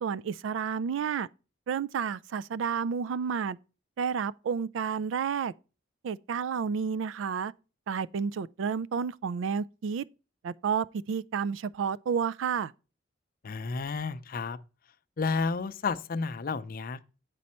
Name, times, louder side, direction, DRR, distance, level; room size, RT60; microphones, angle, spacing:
voice 1, 0.0-1.3 1.7-3.6 4.0-5.5 6.0-7.5 7.9-10.0 10.4-12.7, right 6 dB, 75° right, 0.3 m, -30 dB
voice 2, 13.4-14.6 15.2-17.0, left 4 dB, 50° left, 0.5 m, -31 dB
8.3 x 5.3 x 4.3 m
head